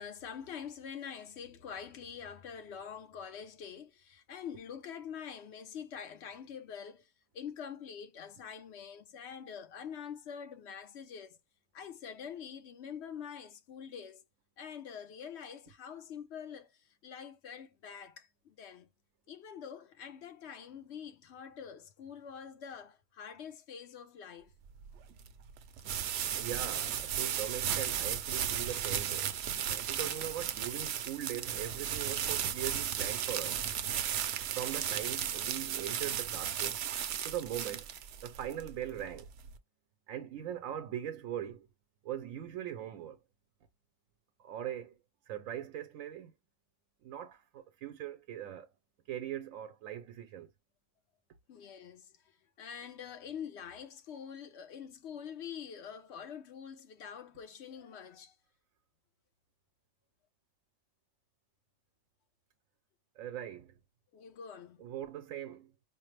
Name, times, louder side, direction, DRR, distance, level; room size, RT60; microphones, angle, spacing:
voice 1, 0.0-7.1 7.3-11.4 11.7-14.2 14.6-16.7 17.0-18.9 19.3-24.5 51.5-58.3 64.1-64.8, left 7 dB, 60° left, 0.9 m, -45 dB
sound 1, 24.7-39.6, right 9 dB, 65° right, 0.7 m, -35 dB
voice 2, 26.3-29.3 29.7-33.6 34.5-36.8 37.2-37.9 38.2-39.3 40.1-41.7 42.0-43.2 44.4-44.9 45.3-46.3 47.0-48.7 49.1-50.5 63.2-63.7 64.8-65.7, right 10 dB, 90° right, 1.0 m, -40 dB
5.0 x 2.0 x 3.2 m
omnidirectional pair, 1.3 m